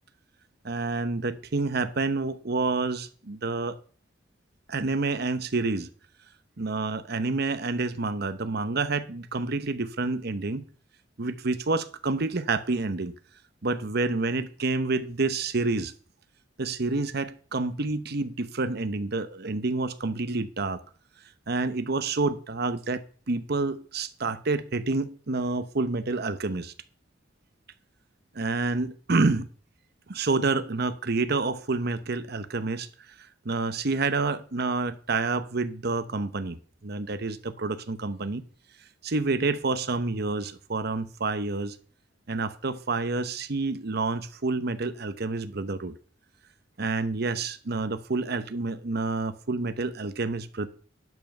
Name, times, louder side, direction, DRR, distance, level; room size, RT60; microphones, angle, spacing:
voice 1, 0.6-3.7 4.7-5.9 6.6-10.7 11.2-13.1 13.6-15.9 16.6-20.8 21.5-23.0 23.3-26.7 28.3-29.5 30.1-32.9 33.4-36.6 36.8-38.4 39.0-41.8 42.3-45.9 46.8-50.7, right 3 dB, 55° right, 0.9 m, -28 dB
11.0 x 5.6 x 6.5 m
head